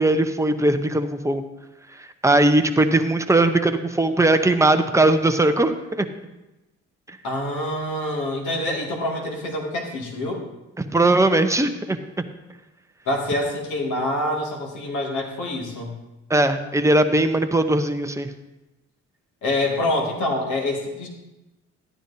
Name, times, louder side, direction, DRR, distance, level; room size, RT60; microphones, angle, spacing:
voice 1, 0.0-1.4 2.2-6.1 10.8-12.0 16.3-18.3, right 2 dB, 10° right, 7 dB, 0.7 m, -19 dB
voice 2, 7.2-10.4 13.1-15.9 19.4-21.1, left 1 dB, 75° left, -1 dB, 2.3 m, -26 dB
13.0 x 10.0 x 2.8 m, 1.0 s
cardioid pair, 90°, 30 cm